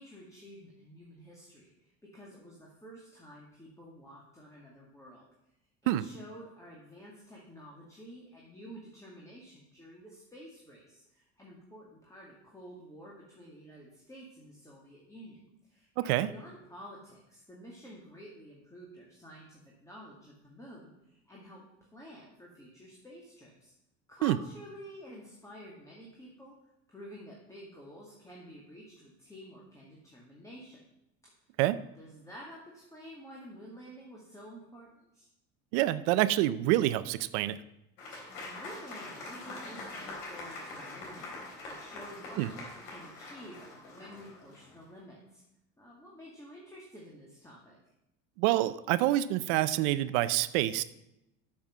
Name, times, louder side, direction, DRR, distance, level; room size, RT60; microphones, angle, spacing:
voice 1, 0.0-5.3 5.8-21.7 21.9-23.7 24.1-26.5 26.9-30.8 31.9-35.3 38.1-45.4 45.8-47.8, equal, 10° left, -4 dB, 2.1 m, -50 dB
voice 2, 16.0-16.3 24.2-24.4 31.6-31.8 35.7-37.6 42.4-42.5 48.4-50.8, right 15 dB, 80° right, 15 dB, 0.6 m, -27 dB
Applause / Crowd, 38.0-44.8, left 2 dB, 90° left, 3.5 m, -44 dB
7.2 x 7.1 x 7.5 m, 0.87 s
supercardioid pair, 115°, 35 cm